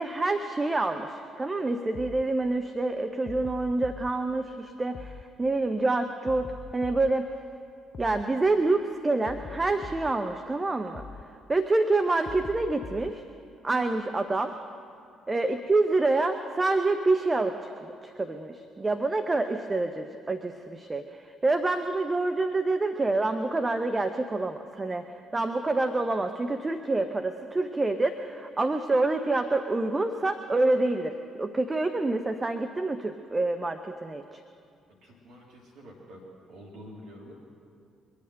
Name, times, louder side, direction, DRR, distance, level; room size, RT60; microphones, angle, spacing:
voice 1, 0.0-7.3 8.0-11.1 11.5-13.2 13.6-14.5 15.3-25.1 25.3-34.4, right 2 dB, 25° right, 7 dB, 0.8 m, -27 dB
sound 1, 1.9-2.3 3.3-4.1 4.9-5.3 6.3-7.2 7.9-8.3 9.3-10.2 10.9-11.3 12.3-13.2, left 5 dB, 45° left, 0.5 m, -42 dB
voice 2, 35.0-37.3, equal, 65° right, -3 dB, 2.5 m, -47 dB
23.0 x 8.6 x 6.5 m, 2.4 s
figure-of-eight pair, 45°, 0 cm